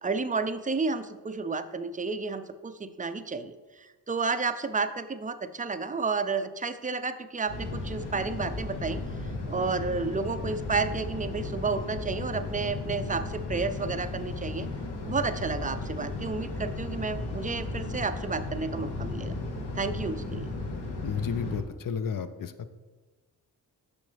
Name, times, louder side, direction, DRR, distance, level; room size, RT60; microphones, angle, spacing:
voice 1, 0.0-9.0 9.5-14.7 15.0-19.3 19.7-20.5, right 4 dB, 20° right, 11 dB, 0.4 m, -31 dB
sound 1, 7.5-21.6, left 2 dB, 85° left, 1.0 m, -35 dB
voice 2, 21.0-22.5, left 7 dB, 55° left, 11 dB, 0.6 m, -32 dB
6.5 x 6.3 x 3.4 m, 1.3 s
cardioid pair, 60°, 40 cm